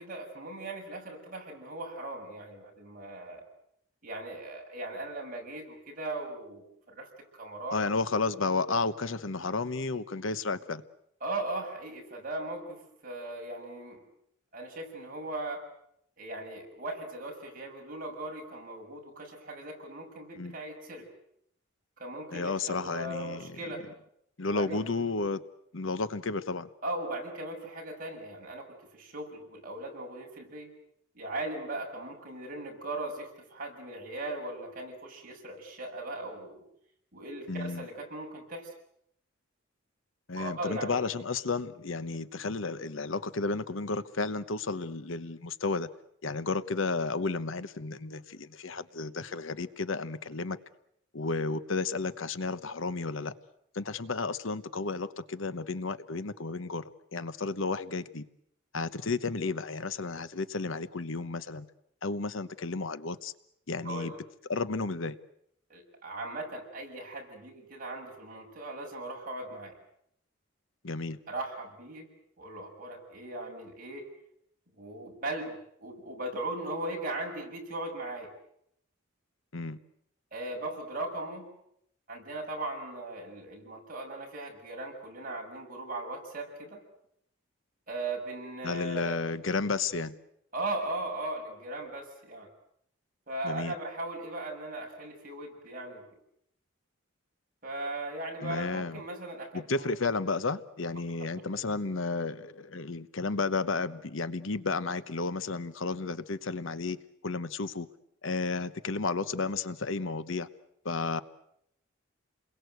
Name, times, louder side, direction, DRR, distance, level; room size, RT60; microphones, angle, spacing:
voice 1, 0.0-3.4 4.0-7.8 11.2-14.0 14.5-15.6 16.2-21.1 22.0-23.9 24.5-24.8 26.8-30.7 31.1-36.6 37.1-38.7 40.3-41.1 63.8-64.2 65.7-69.8 71.3-72.1 72.4-74.1 74.8-78.3 80.3-81.5 82.1-86.8 87.9-89.2 90.5-92.5 93.3-96.0 97.6-99.9, right 2 dB, 40° right, 1 dB, 7.0 m, -38 dB
voice 2, 7.7-10.8 20.4-20.5 22.3-23.5 24.4-25.4 25.7-26.7 37.5-37.9 40.3-45.9 46.2-50.6 51.1-53.3 53.7-58.3 58.7-61.7 62.0-63.3 63.7-64.1 64.5-65.2 70.8-71.2 79.5-79.8 88.6-90.2 93.4-93.7 98.4-99.0 99.5-107.0 107.2-107.9 108.2-110.5 110.8-111.2, left 3 dB, 70° left, 13 dB, 1.0 m, -32 dB
29.5 x 22.0 x 8.1 m, 0.74 s
head